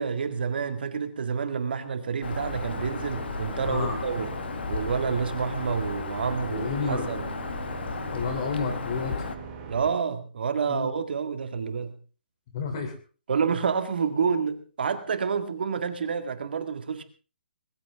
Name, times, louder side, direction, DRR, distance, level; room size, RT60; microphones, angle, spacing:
voice 1, 0.0-4.3 4.7-7.3 9.7-11.9 13.3-17.0, right 6 dB, 60° right, 2.0 m, -28 dB
Bird vocalization bird call bird song, 2.2-9.4, left 5 dB, 70° left, 1.7 m, -35 dB
sound 1, 2.3-9.9, right 5 dB, 20° right, 2.6 m, -41 dB
voice 2, 3.7-4.0 6.5-7.1 8.1-9.2 10.7-10.9 12.5-13.0, left 4 dB, 30° left, 3.4 m, -30 dB
20.5 x 15.0 x 3.7 m
hypercardioid pair, 175°, 6 cm